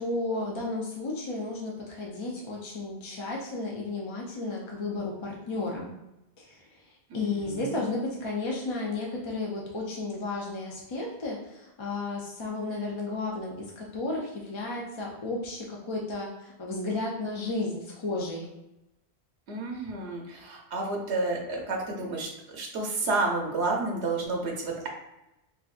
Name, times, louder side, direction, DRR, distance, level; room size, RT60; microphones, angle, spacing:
voice 1, 0.0-5.9 6.4-6.6 7.1-18.5, left 2 dB, 45° left, -2 dB, 0.4 m, -33 dB
voice 2, 7.1-7.8 19.5-24.9, right 3 dB, 80° right, 0 dB, 1.0 m, -31 dB
4.2 x 2.3 x 2.5 m, 0.93 s
omnidirectional pair, 1.1 m